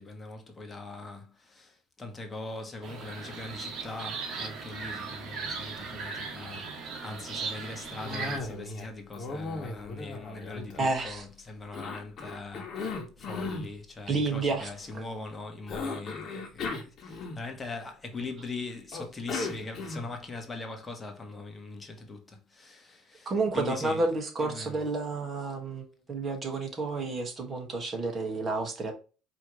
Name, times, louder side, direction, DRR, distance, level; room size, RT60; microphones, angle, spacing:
voice 1, 0.0-24.1 24.4-24.8, left 3 dB, 20° left, 1.3 m, -41 dB
sound 1, 2.8-8.4, right 4 dB, 50° right, 1.6 m, -38 dB
Cough, 8.0-8.9 9.1-11.2 11.7-13.7 15.7-17.7 18.9-20.2, left 3 dB, 50° left, 1.4 m, -37 dB
voice 2, 10.8-11.2 14.1-15.0 23.2-28.9, right 3 dB, 30° right, 1.6 m, -30 dB
4.8 x 3.0 x 3.1 m
cardioid pair, 115°, 0 cm